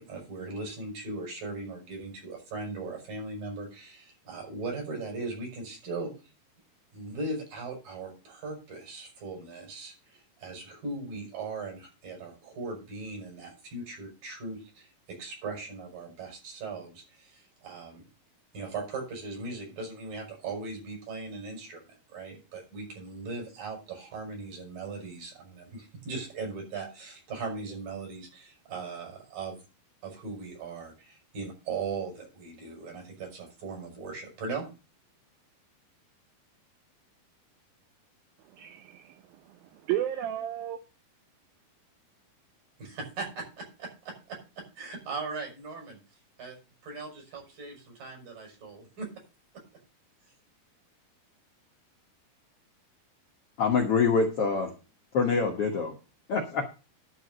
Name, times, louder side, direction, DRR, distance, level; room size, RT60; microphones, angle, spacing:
voice 1, 0.0-6.1 6.9-18.0 18.5-29.6 30.0-34.7 42.8-46.0 46.4-46.6 46.8-49.1, right 3 dB, 60° right, 6.8 m, -39 dB
voice 2, 38.5-40.8, right 12 dB, 75° right, 2.5 m, -34 dB
voice 3, 53.6-54.7 55.1-55.9 56.3-56.6, left 5 dB, 60° left, 1.6 m, -25 dB
11.5 x 4.9 x 7.9 m
omnidirectional pair, 4.5 m